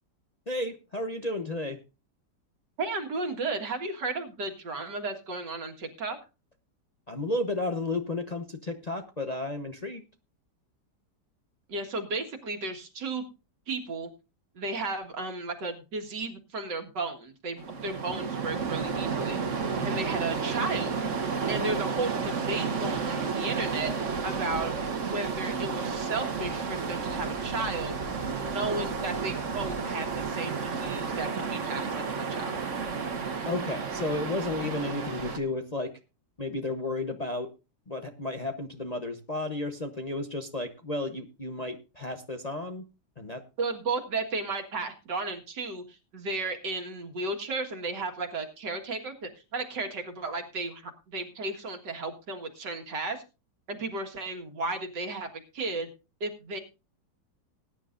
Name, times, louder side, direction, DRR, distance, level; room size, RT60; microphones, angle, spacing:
voice 1, 0.5-1.8 7.1-10.0 19.8-20.0 33.4-35.9 36.4-37.5 37.9-42.9 43.2-43.4, left 2 dB, 30° left, 5 dB, 0.8 m, -33 dB
voice 2, 2.8-6.2 11.7-13.2 13.7-14.1 14.6-21.0 21.5-23.9 24.2-24.8 25.0-27.9 28.3-32.5 43.6-53.2 53.7-55.3 55.5-55.9 56.2-56.6, right 3 dB, 80° right, 5 dB, 2.4 m, -34 dB
sound 1, 17.6-35.4, right 5 dB, 45° right, 1.5 m, -32 dB
20.0 x 10.0 x 2.5 m, 0.30 s
omnidirectional pair, 1.9 m